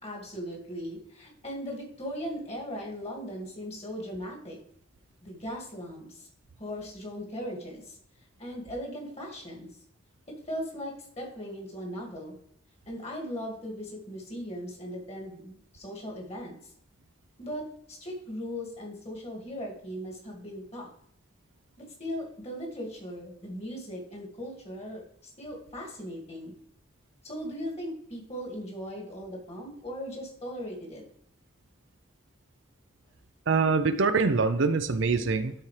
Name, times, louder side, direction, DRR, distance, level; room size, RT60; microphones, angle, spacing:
voice 1, 0.0-4.6 5.2-6.3 6.6-8.0 8.4-9.7 10.3-12.4 12.9-16.7 17.4-20.9 22.0-26.5 27.2-31.0, equal, 30° left, -1 dB, 2.0 m, -38 dB
voice 2, 33.5-35.5, right 4 dB, 65° right, 10 dB, 0.5 m, -24 dB
12.0 x 4.3 x 3.2 m, 0.69 s
head